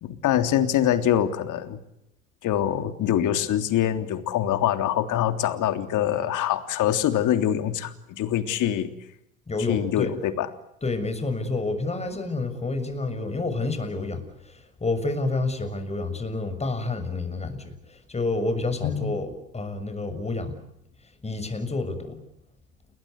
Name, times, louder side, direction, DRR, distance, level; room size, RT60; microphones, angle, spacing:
voice 1, 0.0-1.8 2.4-8.9 9.7-10.5 18.8-19.1, left 11 dB, 50° left, 8 dB, 3.5 m, -24 dB
voice 2, 9.5-10.1 10.8-20.6 21.2-22.2, left 3 dB, 15° left, 9 dB, 6.7 m, -29 dB
30.0 x 21.0 x 8.3 m, 0.81 s
hypercardioid pair, 85°, 40 cm